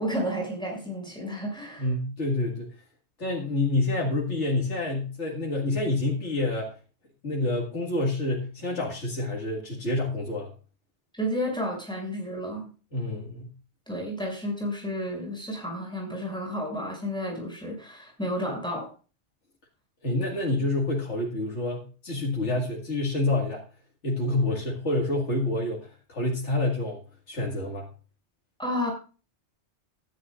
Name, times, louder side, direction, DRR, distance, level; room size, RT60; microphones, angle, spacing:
voice 1, 0.0-1.9 11.2-12.7 13.9-18.9 28.6-28.9, equal, 5° left, -1 dB, 6.3 m, -31 dB
voice 2, 1.8-2.7 3.2-6.7 7.2-10.5 12.9-13.5 20.0-23.6 24.0-27.9, left 2 dB, 90° left, -2 dB, 2.4 m, -28 dB
15.5 x 11.5 x 2.5 m, 0.35 s
omnidirectional pair, 1.2 m